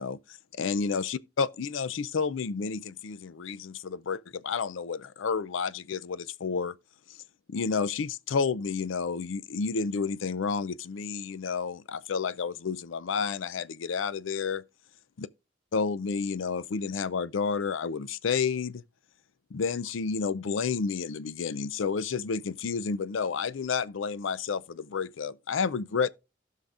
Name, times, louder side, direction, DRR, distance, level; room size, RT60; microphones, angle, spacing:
voice 1, 0.0-6.8 7.1-7.2 7.5-14.6 15.2-15.3 15.7-18.8 19.5-26.1, left 5 dB, 85° left, 0.5 m, -30 dB
16.5 x 5.7 x 2.4 m
head